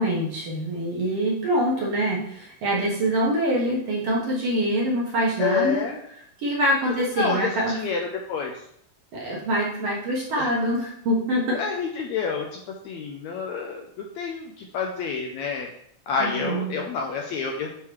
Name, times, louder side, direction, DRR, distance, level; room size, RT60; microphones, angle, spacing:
voice 1, 0.0-5.9 6.4-7.8 9.1-11.6 16.2-16.7, right 1 dB, 60° right, -4 dB, 1.8 m, -25 dB
voice 2, 5.4-6.0 6.8-8.6 10.4-10.5 11.5-15.7 16.1-17.8, left 5 dB, 80° left, 1 dB, 1.6 m, -29 dB
9.3 x 3.7 x 3.1 m, 0.71 s
omnidirectional pair, 3.7 m